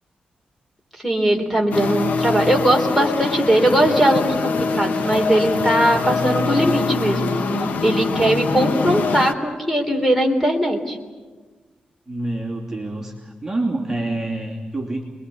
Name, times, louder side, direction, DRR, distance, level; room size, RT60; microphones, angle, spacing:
voice 1, 1.0-11.0, right 1 dB, 5° left, 3 dB, 3.5 m, -20 dB
sound 1, 1.7-9.3, left 4 dB, 90° left, 1.3 m, -23 dB
voice 2, 12.1-15.0, right 2 dB, 15° right, -2 dB, 2.8 m, -27 dB
28.0 x 22.0 x 8.4 m, 1.3 s
wide cardioid pair, 160°, 3 cm